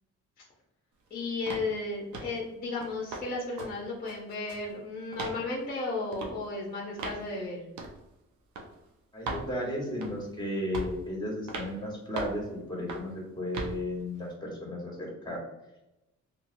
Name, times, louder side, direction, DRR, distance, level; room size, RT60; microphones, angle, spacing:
voice 1, 1.1-7.6, left 3 dB, 30° left, -3 dB, 0.8 m, -34 dB
sound 1, 1.5-1.7 2.1-2.4 2.8-3.3 3.6-3.7 4.1-4.7 5.1-5.4 6.1-6.3 7.0-7.2 7.8-8.0 8.6-8.7 9.3-9.5 10.0-10.3 10.7-11.0 11.5-11.7 12.2-12.4 12.9-13.1 13.5-13.8, right 3 dB, 70° right, 0.7 m, -37 dB
voice 2, 9.1-12.4 12.7-15.4, left 1 dB, 15° left, -2 dB, 1.4 m, -34 dB
2.9 x 2.8 x 2.6 m, 0.92 s
cardioid pair, 90°, 30 cm